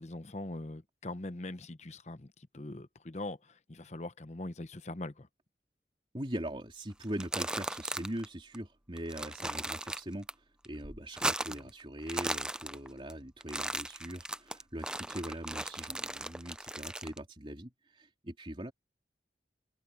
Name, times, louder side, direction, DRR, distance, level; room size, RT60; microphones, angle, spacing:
voice 1, 0.0-5.3 11.5-11.6, left 2 dB, 40° left, 0.9 m, -42 dB
voice 2, 6.1-10.3 10.6-18.7, right 1 dB, 30° right, 3.7 m, -41 dB
sound 1, 7.0-8.3 8.5-8.6 9.0-10.3 10.6-11.7 12.0-13.1 13.4-17.2, right 1 dB, 5° right, 0.3 m, -37 dB
head